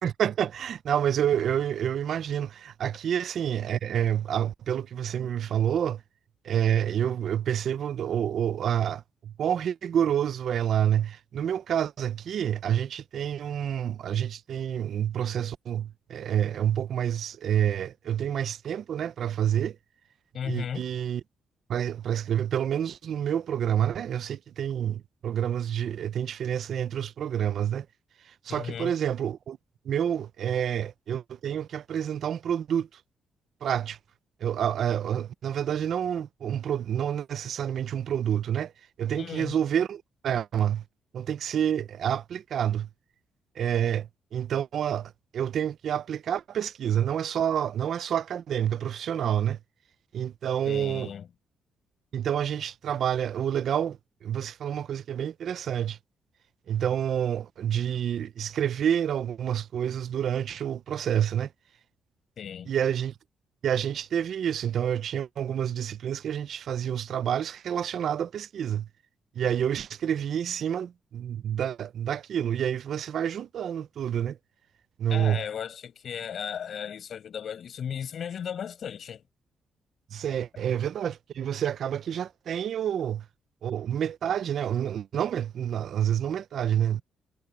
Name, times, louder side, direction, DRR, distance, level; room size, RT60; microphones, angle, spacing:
voice 1, 0.0-6.0 6.4-19.8 20.4-21.2 21.7-27.9 28.4-29.6 29.9-32.9 33.6-34.0 34.4-38.7 39.0-40.8 41.1-42.9 43.6-49.6 50.1-51.1 52.1-56.0 56.7-61.5 62.7-63.1 63.6-68.9 69.4-74.4 75.0-75.4 80.1-83.2 83.6-87.0, right 9 dB, 55° right, 0.5 m, -28 dB
voice 2, 20.3-20.9 28.5-28.9 39.1-39.6 50.6-51.3 62.4-62.7 75.1-79.2, left 8 dB, 50° left, 5.9 m, -35 dB
cardioid pair, 150°, 0 cm